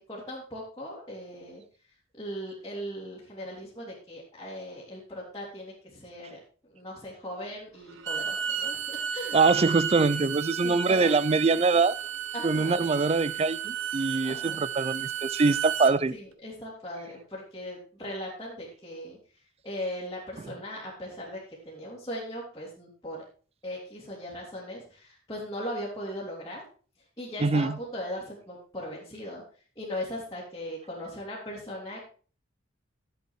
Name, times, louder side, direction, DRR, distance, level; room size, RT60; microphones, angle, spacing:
voice 1, 0.0-1.6 2.2-6.4 6.7-9.4 10.6-11.1 12.3-12.8 14.2-14.6 16.1-19.2 19.6-21.4 21.6-23.2 23.6-26.6 27.2-29.4 29.8-32.0, equal, 20° left, 2.9 m, -38 dB
Bowed string instrument, 7.9-15.9, right 8 dB, 75° right, 1.1 m, -33 dB
voice 2, 9.3-12.0 12.4-16.1 27.4-27.8, right 4 dB, 30° right, 0.4 m, -24 dB
11.5 x 7.8 x 4.6 m
head